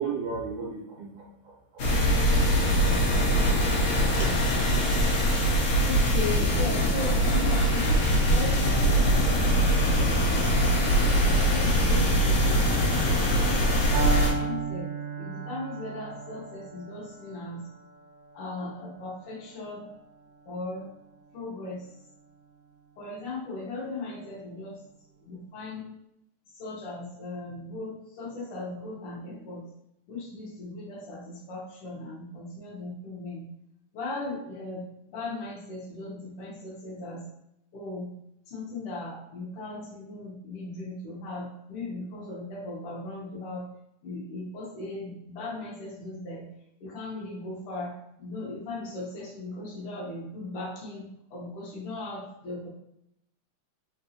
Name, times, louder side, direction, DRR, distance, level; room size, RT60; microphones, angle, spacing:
voice 1, 0.0-2.4, right 5 dB, 80° right, -2 dB, 2.2 m, -35 dB
sound 1, 1.8-14.3, equal, 85° left, 1.2 m, -22 dB
voice 2, 5.8-10.4 11.2-13.7 14.3-14.9 15.2-17.6 18.3-19.9 20.5-20.9 21.3-21.9 23.0-24.8 25.3-25.9 26.6-29.7 30.1-33.4 33.9-37.2 37.7-38.1 38.5-43.6 44.0-46.4 46.8-47.9 48.2-51.0 51.3-52.7, left 2 dB, 70° left, -3 dB, 1.4 m, -37 dB
Piano, 13.9-21.9, right 5 dB, 65° right, 1.2 m, -36 dB
4.4 x 3.8 x 2.8 m, 0.81 s
omnidirectional pair, 3.7 m